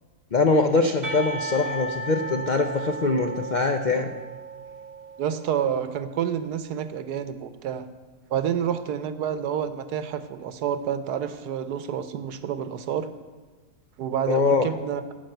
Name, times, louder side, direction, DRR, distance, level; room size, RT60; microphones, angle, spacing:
voice 1, 0.3-4.1 14.3-14.7, left 3 dB, 70° left, 5 dB, 0.4 m, -23 dB
Percussion, 1.0-5.9, right 3 dB, 40° right, 1.1 m, -35 dB
voice 2, 5.2-7.8 8.3-13.1 14.0-15.0, right 8 dB, 70° right, 12 dB, 1.3 m, -28 dB
15.5 x 5.9 x 7.9 m, 1.4 s
omnidirectional pair, 1.8 m